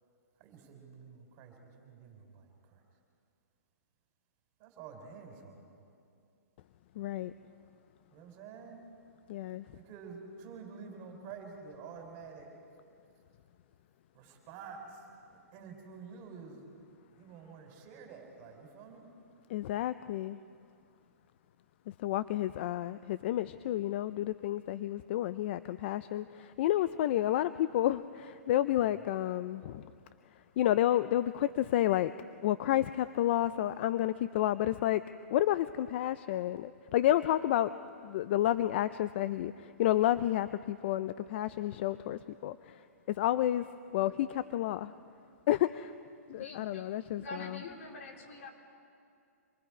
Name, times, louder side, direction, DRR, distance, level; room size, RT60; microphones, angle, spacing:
voice 1, 0.4-2.8 4.6-5.8 8.1-8.8 9.5-12.5 14.1-15.0 15.3-16.6 17.2-19.1, right 5 dB, 30° right, 2 dB, 4.1 m, -49 dB
voice 2, 7.0-7.3 9.3-9.6 19.5-20.4 21.9-29.9 30.6-32.1 32.4-35.0 35.3-37.7 38.0-43.7 43.9-45.0 45.5-45.9 46.3-47.6, left 13 dB, 45° left, 14 dB, 0.5 m, -30 dB
voice 3, 46.3-48.5, left 2 dB, 65° left, 1 dB, 4.2 m, -46 dB
26.5 x 22.0 x 4.9 m, 2.4 s
hypercardioid pair, 150°, 8 cm